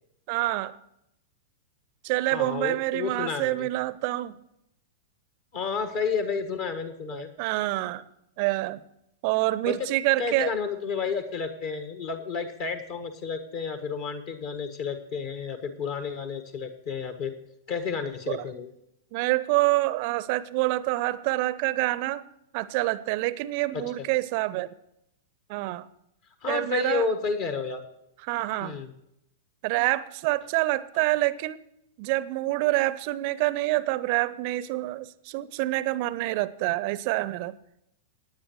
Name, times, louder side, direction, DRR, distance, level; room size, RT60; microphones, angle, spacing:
voice 1, 0.3-0.8 2.0-4.4 7.1-8.0 8.4-8.8 9.2-10.5 18.3-18.5 19.1-22.3 22.5-24.7 25.5-25.9 26.5-27.1 28.2-28.8 29.6-31.6 32.0-37.6, right 18 dB, 45° right, 0.6 m, -27 dB
voice 2, 2.3-3.7 5.5-7.3 9.7-9.8 10.2-17.3 17.7-18.7 23.7-23.8 26.4-27.8 28.6-28.9, left 5 dB, 45° left, 1.5 m, -31 dB
18.0 x 9.6 x 3.1 m
figure-of-eight pair, 100°, 0 cm